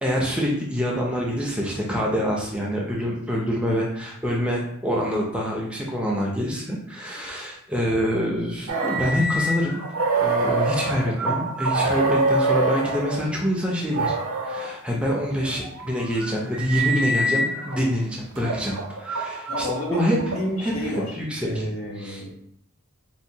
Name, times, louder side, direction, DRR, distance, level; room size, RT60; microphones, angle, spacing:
voice 1, 0.0-9.8 10.2-14.1 14.4-20.2 20.6-21.6 22.0-22.2, equal, 5° right, -2 dB, 0.5 m, -26 dB
sound 1, 8.7-13.2 13.9-14.7 15.4-17.8 18.4-20.7, right 2 dB, 75° right, 0.6 m, -25 dB
voice 2, 19.5-21.0 21.4-22.3, left 1 dB, 70° left, -3 dB, 1.0 m, -30 dB
4.3 x 2.2 x 2.7 m, 0.71 s
head